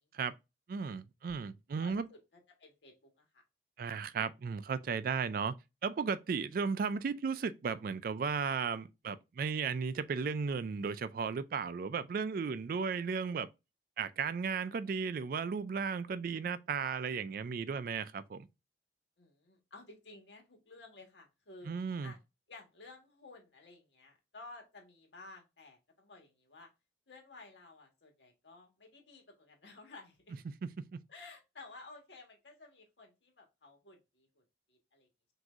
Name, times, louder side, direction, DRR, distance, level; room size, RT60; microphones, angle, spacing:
voice 1, 0.7-2.1 3.8-5.6 5.8-13.5 14.0-18.5 21.7-22.1 30.6-31.0, right 5 dB, 50° right, 0.3 m, -35 dB
voice 2, 1.8-2.2 2.6-3.4 19.2-21.7 22.0-22.2 22.5-26.7 27.1-30.3 31.1-34.4 34.7-35.1, left 3 dB, 80° left, 1.5 m, -54 dB
6.0 x 2.7 x 2.4 m
head